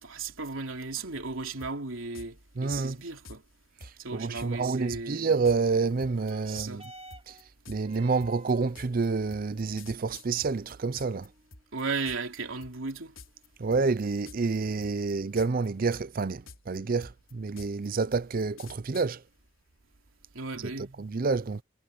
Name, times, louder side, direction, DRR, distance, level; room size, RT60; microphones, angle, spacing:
voice 1, 0.0-3.4 4.0-5.3 6.5-6.9 11.7-13.1 20.3-20.9, right 4 dB, 90° right, 3.1 m, -35 dB
sound 1, 1.6-1.7 2.1-2.3 2.7-3.4 3.8-3.9 4.3-4.5 4.9-11.3 11.5-12.4 12.6-12.9 13.2-13.5 13.7-14.6 14.8-15.7 15.9-19.1, left 3 dB, 85° left, 3.6 m, -48 dB
voice 2, 2.6-3.0 3.8-6.8 7.3-7.4 7.7-11.3 13.6-19.2 20.6-20.7 21.0-21.6, right 4 dB, 45° right, 0.5 m, -28 dB
sound 2, 6.0-15.0 15.8-15.9, right 2 dB, 30° right, 2.3 m, -55 dB
head